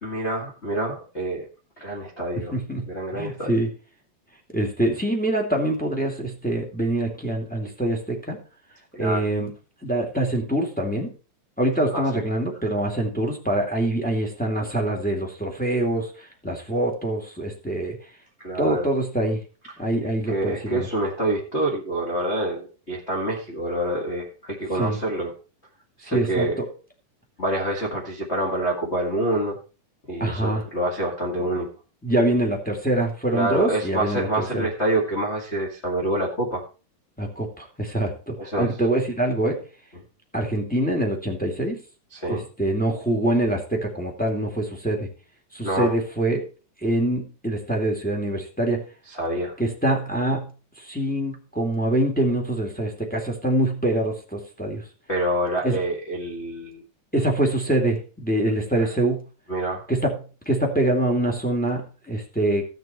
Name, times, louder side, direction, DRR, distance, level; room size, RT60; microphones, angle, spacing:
voice 1, 0.0-1.5 1.8-2.5 2.9-3.5 8.9-9.2 11.9-12.2 18.4-18.9 20.3-25.3 26.0-26.5 27.4-29.6 30.1-31.7 33.3-36.6 38.4-38.7 42.1-42.4 45.6-45.9 49.1-49.6 55.1-56.8 59.5-59.8, right 1 dB, 25° left, -3 dB, 1.6 m, -27 dB
voice 2, 2.5-2.9 3.1-3.7 4.5-8.4 9.0-9.5 9.8-11.1 11.6-18.0 18.6-19.4 19.8-20.9 24.7-25.0 26.0-26.6 30.2-30.6 32.0-34.7 37.2-39.6 40.3-41.8 42.2-45.1 45.5-46.4 46.8-48.8 49.6-50.5 50.8-54.8 55.6-55.8 57.1-59.2 59.9-60.2 60.4-62.6, right 1 dB, 5° left, 1 dB, 1.7 m, -24 dB
15.0 x 6.7 x 4.3 m, 0.35 s
omnidirectional pair, 4.0 m